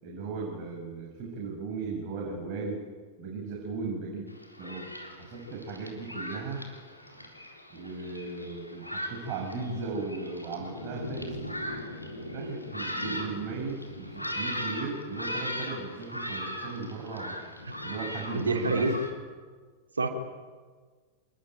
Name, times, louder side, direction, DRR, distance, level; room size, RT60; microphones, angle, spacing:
voice 1, 0.0-2.8 3.2-6.6 7.7-11.4 12.2-17.4 17.8-18.9, right 4 dB, 40° right, -1 dB, 6.8 m, -37 dB
Thunderstorm, 4.3-19.1, equal, 90° left, 3.9 m, -38 dB
voice 2, 18.3-18.9 19.9-20.1, right 3 dB, 75° right, 4 dB, 3.5 m, -27 dB
27.5 x 21.0 x 9.1 m, 1.5 s
figure-of-eight pair, 90°, 0 cm